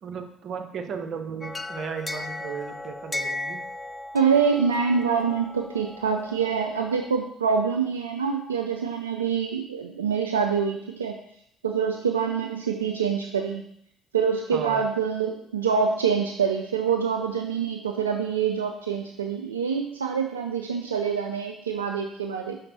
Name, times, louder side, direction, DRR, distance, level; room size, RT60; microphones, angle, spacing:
voice 1, 0.0-3.6 14.5-14.8, right 6 dB, 55° right, 6 dB, 0.7 m, -35 dB
sound 1, 1.4-7.1, left 2 dB, 20° left, 0.3 m, -36 dB
voice 2, 4.1-11.1 11.6-13.6 14.1-22.6, right 6 dB, 85° right, 3 dB, 0.3 m, -25 dB
5.8 x 4.2 x 4.0 m, 0.71 s
figure-of-eight pair, 50°, 0 cm